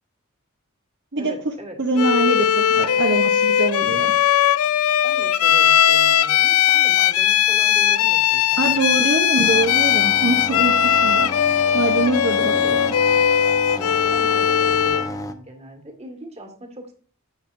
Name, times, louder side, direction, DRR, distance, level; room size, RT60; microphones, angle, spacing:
voice 1, 1.2-1.8 5.0-9.2 13.7-16.9, right 1 dB, 30° right, 4 dB, 1.9 m, -40 dB
voice 2, 1.8-4.1 8.6-12.9, right 2 dB, 55° right, 3 dB, 0.9 m, -24 dB
Bowed string instrument, 2.0-15.1, left 9 dB, 85° left, 0.4 m, -18 dB
sound 1, 9.4-15.3, left 2 dB, 15° left, 0.7 m, -32 dB
10.5 x 7.9 x 2.6 m, 0.41 s
head